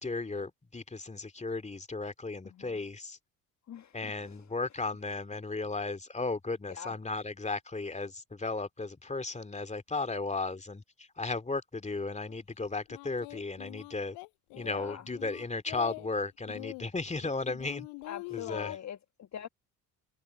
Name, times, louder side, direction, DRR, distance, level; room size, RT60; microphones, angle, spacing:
voice 1, 0.0-3.2 3.9-14.2 14.6-17.9 18.3-18.8, left 3 dB, 15° left, 2.5 m, -35 dB
voice 2, 3.7-4.4 6.7-6.9 14.5-15.0 18.0-19.5, left 9 dB, 35° left, 1.6 m, -43 dB
Singing, 12.3-12.4 12.9-16.1 16.5-18.8, left 29 dB, 65° left, 6.7 m, -44 dB
figure-of-eight pair, 55°, 45 cm